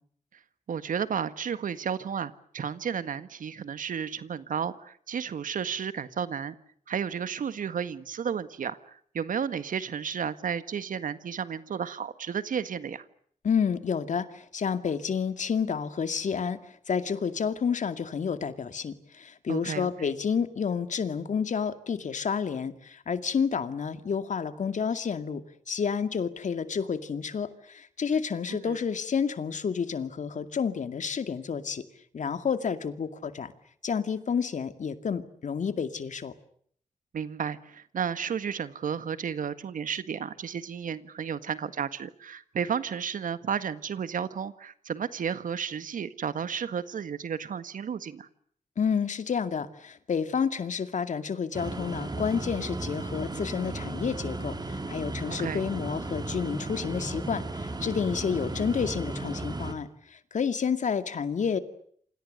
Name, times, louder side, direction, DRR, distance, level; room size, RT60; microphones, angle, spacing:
voice 1, 0.7-6.6 6.9-13.1 19.5-20.1 28.5-28.8 37.1-48.3 55.3-55.6, right 7 dB, 85° right, 13 dB, 1.7 m, -33 dB
voice 2, 13.4-31.8 32.1-33.5 33.8-36.3 48.8-61.6, left 6 dB, 65° left, 10 dB, 2.3 m, -30 dB
sound 1, 51.5-59.7, right 2 dB, 30° right, 3.9 m, -35 dB
29.0 x 26.0 x 6.7 m, 0.63 s
wide cardioid pair, 105°, 13 cm